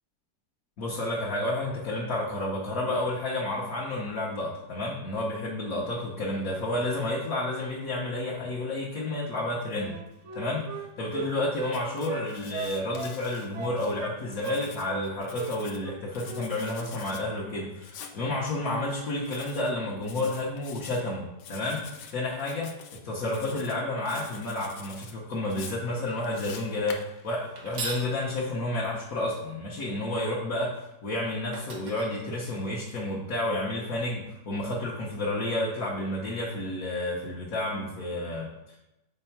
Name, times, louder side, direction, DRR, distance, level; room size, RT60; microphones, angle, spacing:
voice 1, 0.8-10.0 10.3-10.7 11.0-38.8, left 1 dB, 60° left, -5 dB, 1.4 m, -31 dB
Wind instrument woodwind instrument, 9.8-11.8 12.1-13.2 13.5-14.2 14.4-15.1 15.3-15.5 15.8-16.5 16.7-16.9, right 3 dB, 55° right, 0.9 m, -36 dB
Writing, 11.6-13.9 14.3-15.8 16.1-17.2 17.8-18.2 19.3-19.7 20.0-21.0 21.4-22.1 22.4-23.0 23.3-23.8 24.1-25.1 25.5-27.8, left 7 dB, 85° left, 1.3 m, -46 dB
sound 1, 27.6-28.1 31.0-31.1 31.5-32.9, right 3 dB, 85° right, 1.8 m, -38 dB
4.5 x 4.3 x 5.8 m, 0.94 s
omnidirectional pair, 1.8 m